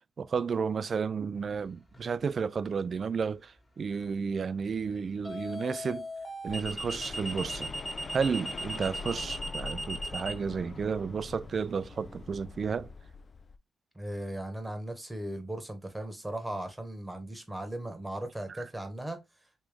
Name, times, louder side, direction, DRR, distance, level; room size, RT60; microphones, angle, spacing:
voice 1, 0.2-6.1 6.4-7.7 8.1-12.9, right 5 dB, 55° right, 0.3 m, -32 dB
sound 1, 1.9-2.3 5.2-10.3, right 1 dB, 25° left, 1.7 m, -37 dB
sound 2, 6.5-13.6, left 4 dB, 45° left, 0.4 m, -43 dB
voice 2, 13.9-19.2, right 1 dB, 10° right, 1.2 m, -37 dB
3.1 x 3.1 x 3.4 m
supercardioid pair, 60°, 0 cm